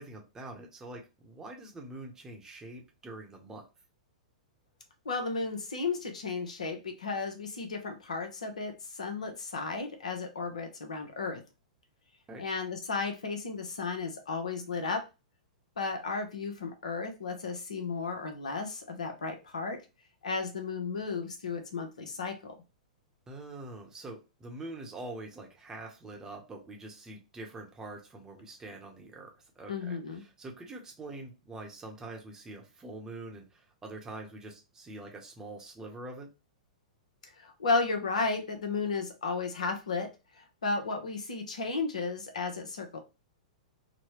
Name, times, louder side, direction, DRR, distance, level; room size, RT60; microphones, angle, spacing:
voice 1, 0.0-3.6 12.3-12.4 23.3-36.3, right 2 dB, 15° right, 1 dB, 0.9 m, -45 dB
voice 2, 5.0-11.4 12.4-15.0 15.8-19.8 20.2-22.5 29.7-30.2 37.4-40.1 40.4-43.0, left 4 dB, 70° left, 5 dB, 0.9 m, -34 dB
4.0 x 2.2 x 2.9 m, 0.28 s
figure-of-eight pair, 105°, 4 cm